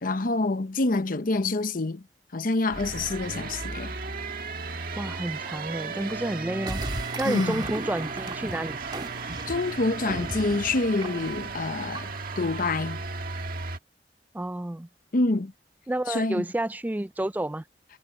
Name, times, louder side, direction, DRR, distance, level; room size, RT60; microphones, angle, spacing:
voice 1, 0.0-2.0 2.3-3.9 7.2-7.7 9.5-13.0 15.1-15.5 16.1-16.4, left 2 dB, 50° left, 0.8 m, -27 dB
sound 1, 2.7-13.8, right 4 dB, 55° right, 1.7 m, -35 dB
voice 2, 5.0-8.8 14.3-14.9 15.9-17.6, right 1 dB, 10° right, 0.4 m, -30 dB
sound 2, 6.7-12.5, right 2 dB, 25° right, 1.9 m, -37 dB
head